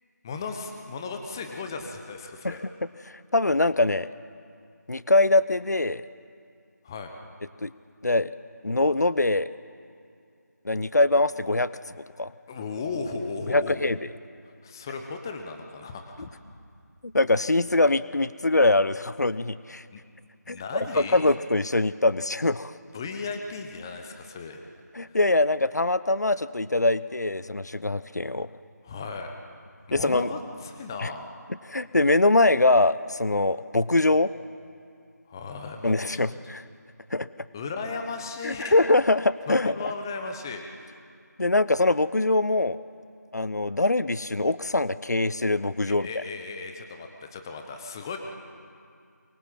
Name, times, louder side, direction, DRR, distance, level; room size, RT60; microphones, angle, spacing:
voice 1, 0.2-2.6 6.8-7.1 12.5-13.9 14.6-16.3 19.9-20.0 20.5-21.2 22.9-24.6 25.1-25.2 28.8-29.3 29.9-31.3 35.3-36.2 37.5-38.7 39.5-41.0 45.9-48.2, left 4 dB, 10° left, 4 dB, 1.1 m, -36 dB
voice 2, 3.0-4.1 4.9-6.0 7.6-7.7 8.0-8.3 8.6-9.5 10.6-11.7 12.2-12.3 13.5-14.0 17.1-19.8 20.5-20.6 20.9-22.7 24.9-28.5 29.9-30.3 31.0-31.1 31.7-34.3 35.8-36.6 37.1-37.3 38.4-39.9 41.4-42.8 43.3-46.2, left 2 dB, 65° left, 16 dB, 0.9 m, -23 dB
24.5 x 22.0 x 7.6 m, 2.3 s
figure-of-eight pair, 165°, 10 cm